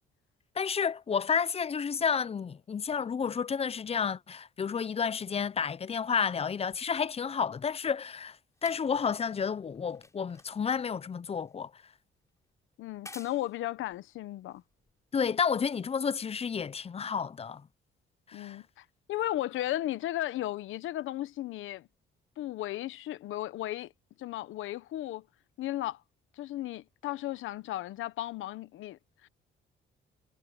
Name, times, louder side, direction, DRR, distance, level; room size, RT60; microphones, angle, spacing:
voice 1, 0.6-8.4 8.6-11.7 15.1-17.6 18.3-18.6, left 6 dB, 30° left, 0.6 m, -31 dB
sound 1, 6.7-15.3 16.2-16.3, left 2 dB, 15° left, 4.7 m, -56 dB
voice 2, 12.8-14.6 18.3-21.9 22.4-23.9 24.2-25.3 25.6-26.0 26.4-29.3, left 14 dB, 80° left, 1.0 m, -35 dB
cardioid pair, 90°, 20 cm